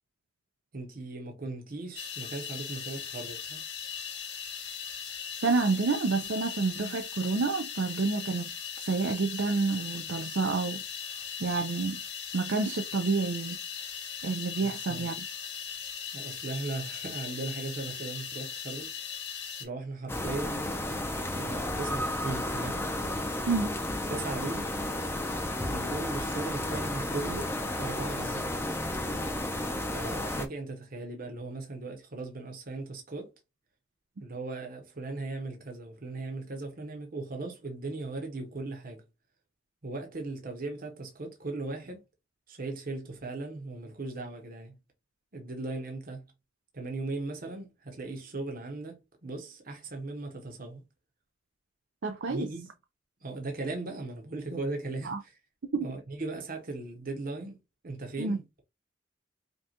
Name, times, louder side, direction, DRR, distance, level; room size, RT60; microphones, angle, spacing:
voice 1, 0.7-3.7 14.6-15.1 16.1-18.9 19.6-20.6 21.2-22.8 24.1-24.7 25.6-28.5 29.9-33.3 34.2-39.0 39.8-42.0 42.5-44.7 45.3-46.3 46.7-50.8 52.3-52.7 53.2-55.1 55.8-58.6, right 3 dB, 50° right, 0.9 m, -38 dB
sound 1, 1.9-19.6, left 7 dB, 60° left, 1.8 m, -39 dB
voice 2, 5.4-8.5 8.8-10.8 11.1-12.0 12.3-13.6 14.2-15.2 23.5-23.8 52.0-52.5 55.0-55.2 55.7-55.9 58.2-58.4, right 4 dB, 70° right, 0.5 m, -29 dB
sound 2, 20.1-30.5, left 1 dB, 15° left, 0.6 m, -32 dB
5.3 x 2.3 x 2.9 m
head